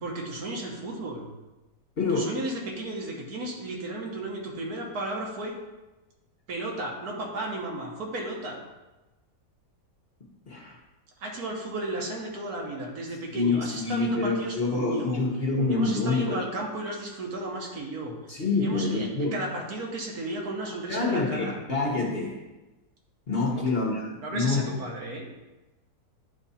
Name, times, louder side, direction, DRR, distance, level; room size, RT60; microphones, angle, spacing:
voice 1, 0.0-1.3 2.1-5.5 6.5-8.6 11.2-15.2 15.7-18.2 18.6-21.6 23.5-23.7 24.2-25.3, right 1 dB, 70° right, 0 dB, 1.6 m, -34 dB
voice 2, 2.0-2.3 10.5-10.8 13.3-16.4 18.3-19.4 20.9-22.4 23.3-24.7, left 3 dB, 45° left, -1 dB, 1.0 m, -27 dB
10.0 x 3.4 x 4.1 m, 1.1 s
omnidirectional pair, 1.7 m